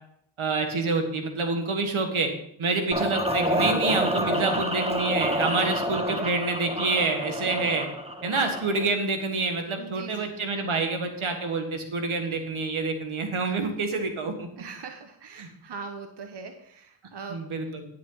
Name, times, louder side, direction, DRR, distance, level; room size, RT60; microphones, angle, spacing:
voice 1, 0.4-2.3 2.6-7.9 8.2-14.5 15.4-15.5 17.3-17.9, right 3 dB, 75° right, 5 dB, 1.7 m, -27 dB
sound 1, 2.9-8.9, equal, 10° right, 1.6 m, -28 dB
voice 2, 9.8-10.3 14.6-17.4, right 5 dB, 55° right, 6 dB, 1.1 m, -41 dB
9.6 x 8.6 x 3.9 m, 0.73 s
cardioid pair, 45°, 49 cm